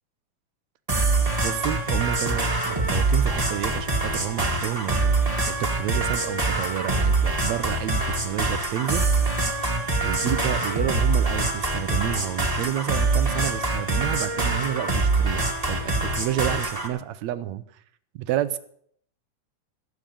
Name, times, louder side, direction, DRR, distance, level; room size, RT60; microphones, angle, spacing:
sound 1, 0.9-16.9, right 3 dB, 15° right, 1.5 m, -24 dB
voice 1, 1.4-5.2 5.5-9.0 10.0-17.6 18.2-18.6, right 12 dB, 75° right, 14 dB, 1.9 m, -30 dB
15.5 x 6.7 x 8.9 m, 0.64 s
omnidirectional pair, 3.5 m